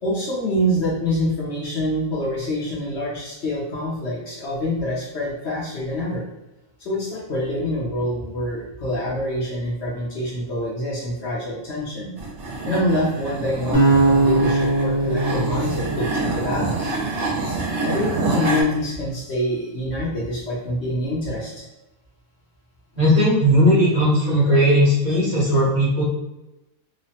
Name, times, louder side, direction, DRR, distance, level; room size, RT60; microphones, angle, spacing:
voice 1, 0.0-6.2 6.8-12.1 12.7-17.0 17.8-21.7, left 1 dB, 55° left, -5 dB, 1.0 m, -26 dB
sound 1, 12.2-18.6, right 3 dB, 65° right, 0.9 m, -27 dB
sound 2, 13.7-16.9, right 2 dB, 20° left, 0.6 m, -20 dB
voice 2, 23.0-26.0, equal, 35° right, -9 dB, 0.8 m, -17 dB
3.0 x 2.1 x 2.7 m, 0.96 s
omnidirectional pair, 1.5 m